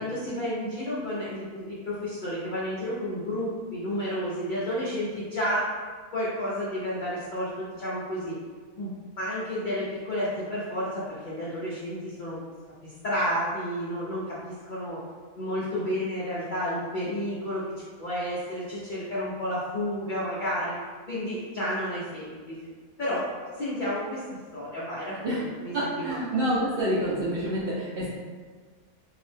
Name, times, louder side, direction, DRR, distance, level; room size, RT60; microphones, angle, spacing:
voice 1, 0.0-5.6 6.1-8.3 8.8-8.9 9.2-12.4 12.8-15.0 15.3-17.6 18.0-20.7 21.1-22.6 23.0-23.3 23.5-24.2 24.5-26.2, equal, 85° left, -8 dB, 0.4 m, -31 dB
voice 2, 25.7-28.1, right 1 dB, 75° right, -9 dB, 0.5 m, -27 dB
2.7 x 2.0 x 3.1 m, 1.5 s
omnidirectional pair, 1.6 m